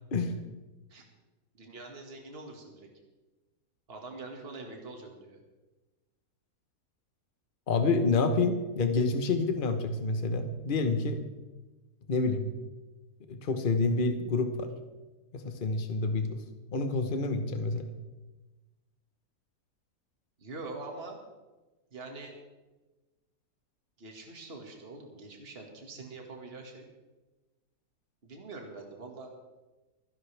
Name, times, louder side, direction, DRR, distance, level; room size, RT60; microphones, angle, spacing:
voice 1, 1.5-2.9 3.9-5.4 20.4-21.2 21.9-22.4 24.0-26.9 28.2-29.3, right 3 dB, 40° right, 2 dB, 2.1 m, -44 dB
voice 2, 7.7-11.2 12.1-12.5 13.3-14.7 15.3-16.4 16.7-17.9, left 3 dB, 35° left, 7 dB, 1.2 m, -28 dB
25.5 x 11.0 x 3.4 m, 1.2 s
omnidirectional pair, 1.7 m